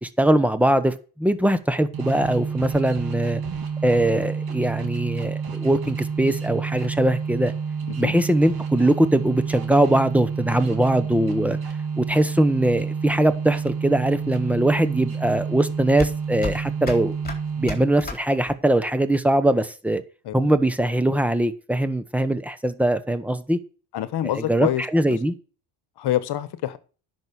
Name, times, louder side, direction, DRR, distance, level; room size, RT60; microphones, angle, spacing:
voice 1, 0.0-3.4 3.8-7.5 8.0-11.6 12.0-17.2 17.6-20.0 20.3-23.6 24.3-25.3, right 1 dB, 5° right, 1.0 m, -21 dB
sound 1, 1.9-18.1, right 6 dB, 50° right, 2.8 m, -29 dB
sound 2, 12.9-18.9, left 4 dB, 20° left, 3.6 m, -36 dB
voice 2, 23.9-25.2 26.0-26.8, left 12 dB, 55° left, 1.4 m, -27 dB
10.5 x 6.3 x 7.0 m
cardioid pair, 125°, 47 cm